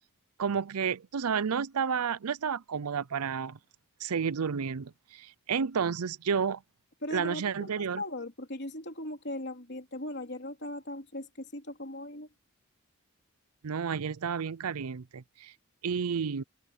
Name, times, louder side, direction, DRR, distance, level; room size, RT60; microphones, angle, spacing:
voice 1, 0.4-3.6 4.0-6.6 7.1-8.0 13.6-15.5 15.8-16.4, right 6 dB, 85° right, 0.6 m, -31 dB
voice 2, 7.0-12.3, left 1 dB, 50° left, 3.2 m, -39 dB
open air
head